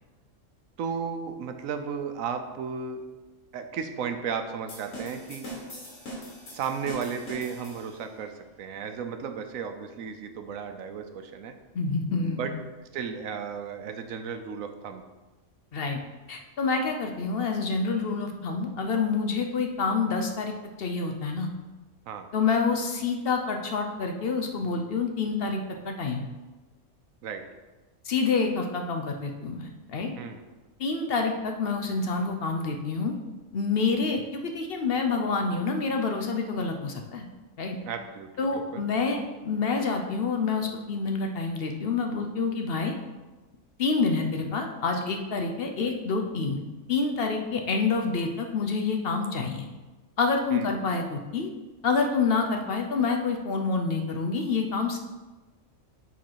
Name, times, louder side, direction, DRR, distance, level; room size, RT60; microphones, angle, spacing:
voice 1, 0.8-3.0 3.5-5.5 6.5-11.5 12.3-12.5 12.9-15.0 22.1-22.3 27.2-27.4 30.2-30.4 37.9-38.8 50.5-50.7, right 6 dB, 90° right, 7 dB, 1.1 m, -34 dB
sound 1, 4.7-8.1, equal, 70° left, 1.9 m, -41 dB
voice 2, 11.7-12.5 15.7-16.0 16.3-20.5 20.8-21.5 22.3-26.3 28.0-30.1 30.8-33.1 33.5-37.3 37.6-37.8 38.4-42.9 43.8-46.6 46.9-49.7 50.2-51.5 51.8-55.0, left 4 dB, 55° left, 3 dB, 0.8 m, -27 dB
7.3 x 4.0 x 4.5 m, 1.2 s
omnidirectional pair, 1.4 m